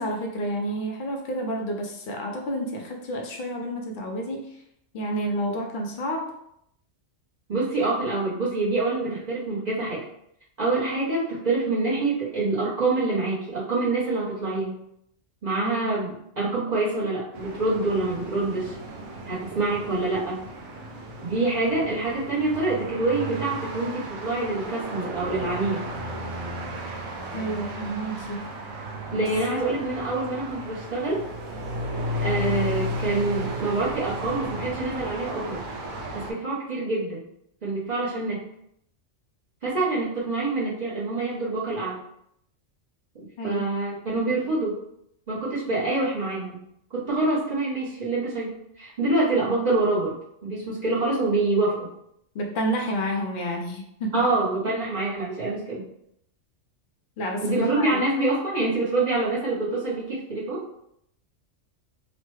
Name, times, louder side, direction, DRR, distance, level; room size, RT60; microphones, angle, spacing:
voice 1, 0.0-4.5 4.9-6.3 15.6-15.9 27.3-28.5 29.1-29.3 43.4-43.6 44.1-44.3 52.3-54.3 57.2-58.0, right 1 dB, 60° left, 2 dB, 0.5 m, -30 dB
voice 2, 7.5-10.0 10.6-14.8 15.4-18.8 19.3-20.4 21.2-25.8 29.1-31.2 32.2-35.6 36.1-37.2 37.6-38.4 39.6-42.0 43.1-44.8 45.3-46.6 46.9-51.9 54.1-55.8 57.4-60.6, right 2 dB, 40° right, -9 dB, 0.7 m, -26 dB
sound 1, 17.3-36.3, equal, 90° right, 1.0 m, -34 dB
3.0 x 2.1 x 3.0 m, 0.73 s
omnidirectional pair, 1.3 m